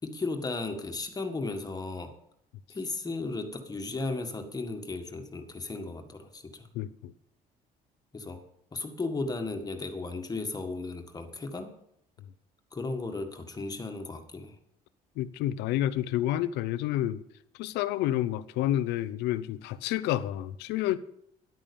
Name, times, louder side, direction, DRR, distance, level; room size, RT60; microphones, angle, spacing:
voice 1, 0.0-2.1 2.7-6.7 8.1-8.4 8.7-11.7 12.7-14.6, left 3 dB, 20° left, 1.8 m, -35 dB
voice 2, 6.7-7.1 15.2-17.2 17.6-21.0, left 13 dB, 90° left, 0.7 m, -29 dB
11.0 x 9.0 x 7.0 m
cardioid pair, 110°, 17 cm